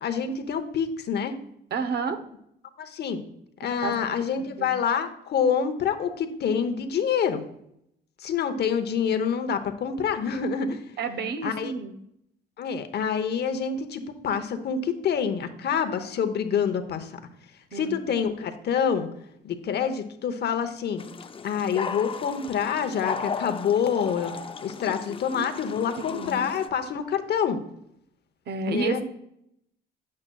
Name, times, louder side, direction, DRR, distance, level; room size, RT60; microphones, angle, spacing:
voice 1, 0.0-1.3 2.8-3.2 3.6-7.4 8.2-10.8 11.4-11.7 12.6-17.2 17.7-19.1 19.4-21.0 21.4-24.3 24.6-27.6 28.7-29.0, left 7 dB, 60° left, 8 dB, 0.8 m, -27 dB
voice 2, 1.7-2.2 3.8-4.0 4.6-4.7 11.0-11.9 17.7-18.1 26.0-26.5 28.5-29.0, right 5 dB, 60° right, 8 dB, 0.8 m, -30 dB
sound 1, 21.0-26.7, left 5 dB, 30° left, 0.5 m, -36 dB
8.7 x 7.4 x 2.3 m, 0.76 s
supercardioid pair, 75°, 20 cm